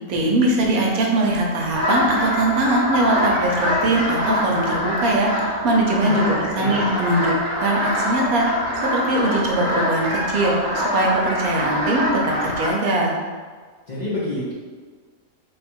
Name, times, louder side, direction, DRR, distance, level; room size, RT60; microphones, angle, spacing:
voice 1, 0.1-8.5 8.7-13.2, right 2 dB, 85° right, -1 dB, 1.2 m, -21 dB
sound 1, 1.7-12.7, equal, 45° right, 0.7 m, -24 dB
voice 2, 6.1-6.9 13.9-14.5, left 2 dB, 40° left, -9 dB, 0.7 m, -27 dB
3.2 x 2.4 x 4.3 m, 1.5 s
omnidirectional pair, 1.5 m